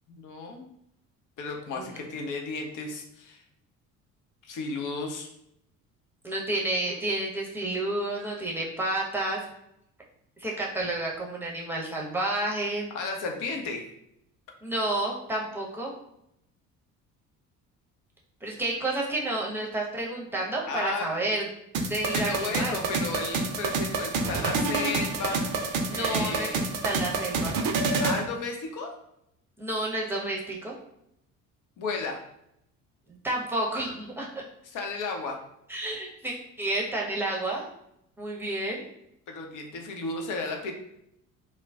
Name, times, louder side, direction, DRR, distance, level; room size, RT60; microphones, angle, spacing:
voice 1, 0.2-0.7 1.4-3.4 4.4-5.3 12.9-13.8 20.7-21.1 22.1-25.4 25.9-26.6 28.0-28.9 31.8-32.2 34.6-35.4 39.3-40.7, left 3 dB, 45° left, 2 dB, 0.7 m, -33 dB
voice 2, 6.2-9.4 10.4-12.9 14.6-15.9 18.4-21.4 21.9-22.8 25.9-26.5 26.8-27.6 29.6-30.7 33.2-34.4 35.7-37.7 38.2-38.8, right 1 dB, 5° right, -3 dB, 0.8 m, -30 dB
sound 1, 21.7-28.2, right 3 dB, 50° right, 0.6 m, -28 dB
2.3 x 2.1 x 3.4 m, 0.78 s
figure-of-eight pair, 55°, 42 cm